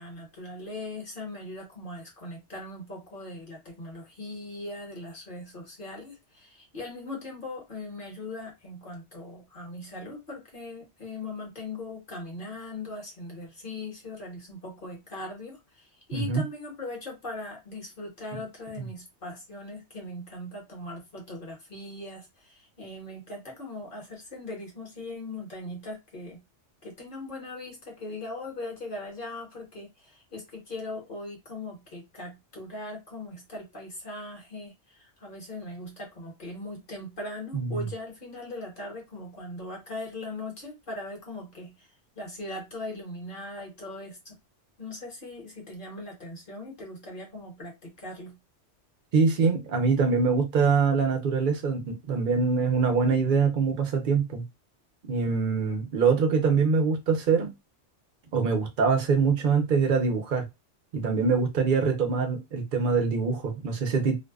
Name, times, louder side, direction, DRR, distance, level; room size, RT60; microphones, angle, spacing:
voice 1, 0.0-26.4 26.8-44.3 44.8-48.4, left 2 dB, 50° left, 1.1 m, -40 dB
voice 2, 49.1-54.4 55.1-57.5 58.3-60.5 60.9-64.2, right 5 dB, 50° right, 0.7 m, -24 dB
2.6 x 2.1 x 2.3 m
omnidirectional pair, 1.2 m